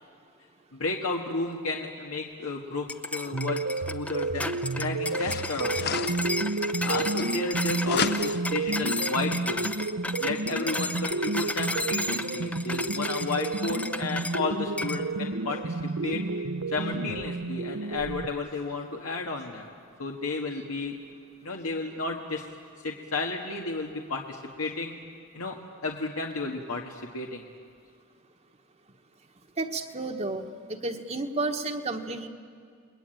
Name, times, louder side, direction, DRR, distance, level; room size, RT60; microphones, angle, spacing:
voice 1, 0.7-5.8 6.8-9.6 10.2-16.2 16.7-19.7 20.0-21.0 21.4-22.4 22.8-24.9 25.3-27.4, left 3 dB, 80° left, 0 dB, 1.8 m, -33 dB
sound 1, 2.9-14.4 14.8-15.0, left 2 dB, 5° left, 0.7 m, -33 dB
sound 2, 3.3-18.3, right 3 dB, 70° right, 0.9 m, -31 dB
sound 3, 4.3-4.4 5.0-7.5 7.8-8.6, left 6 dB, 50° left, 0.8 m, -33 dB
voice 2, 29.6-32.3, right 2 dB, 30° right, 4 dB, 1.3 m, -32 dB
29.5 x 21.5 x 9.1 m, 2.2 s
head